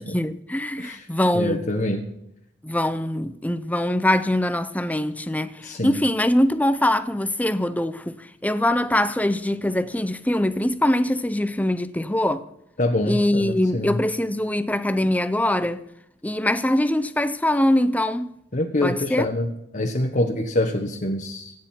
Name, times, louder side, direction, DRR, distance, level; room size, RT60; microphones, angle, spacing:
voice 1, 0.1-1.7 2.6-12.4 13.1-15.9 16.2-18.3 18.8-19.3, left 1 dB, 10° left, 0.6 m, -23 dB
voice 2, 1.3-2.1 5.6-6.0 12.8-14.0 18.5-21.5, left 1 dB, 50° left, 1.3 m, -25 dB
25.0 x 9.4 x 4.5 m
head